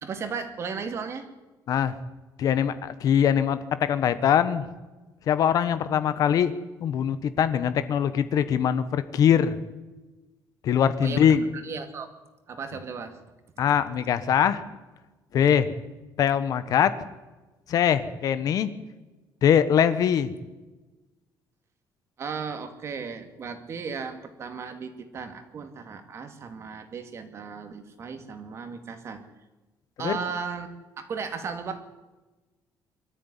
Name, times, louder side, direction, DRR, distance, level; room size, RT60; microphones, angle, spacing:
voice 1, 0.0-1.3 11.0-12.1 12.5-13.2 22.2-29.2 30.0-30.7 31.0-31.8, right 5 dB, 35° right, 8 dB, 2.5 m, -35 dB
voice 2, 2.4-4.6 5.3-6.5 6.8-9.6 10.6-11.5 13.6-14.6 15.3-15.7 16.2-16.9 17.7-18.7 19.4-20.3 30.0-30.2, left 8 dB, 50° left, 13 dB, 1.3 m, -22 dB
24.5 x 13.5 x 10.0 m, 1.2 s
cardioid pair, 180°, 8 cm